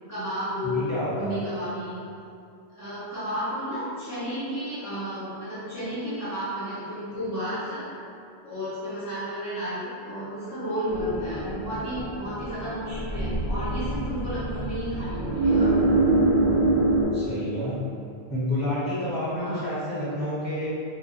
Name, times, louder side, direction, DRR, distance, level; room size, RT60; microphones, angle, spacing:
voice 1, 0.1-2.0 2.7-7.8 8.4-15.7 19.3-19.6, equal, 20° left, -14 dB, 0.5 m, -32 dB
voice 2, 0.6-1.4 17.1-17.8 18.3-20.7, left 1 dB, 15° right, -14 dB, 1.0 m, -29 dB
sound 1, 10.9-17.0, right 2 dB, 85° right, 0.9 m, -25 dB
2.7 x 2.0 x 2.4 m, 2.5 s
omnidirectional pair, 1.1 m